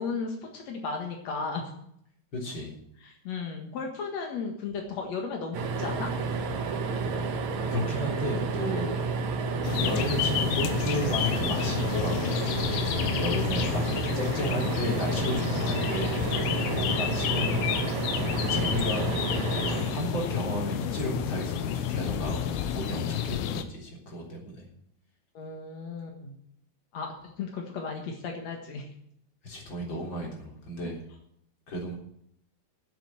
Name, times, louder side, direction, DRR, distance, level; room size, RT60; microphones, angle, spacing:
voice 1, 0.0-1.7 3.0-6.1 25.3-26.3 26.9-28.9, left 4 dB, 70° left, 2 dB, 1.6 m, -35 dB
voice 2, 2.3-2.7 7.7-9.0 9.8-12.3 13.1-13.8 14.1-17.7 18.4-19.1 19.9-24.7 29.4-31.0 31.7-31.9, left 1 dB, 25° left, 0 dB, 3.6 m, -33 dB
sound 1, 5.5-20.8 22.5-22.7 23.0-23.1, right 4 dB, 80° right, 1.6 m, -31 dB
sound 2, 9.6-23.6, left 9 dB, 90° left, 3.5 m, -30 dB
12.0 x 7.7 x 8.8 m, 0.72 s
omnidirectional pair, 5.7 m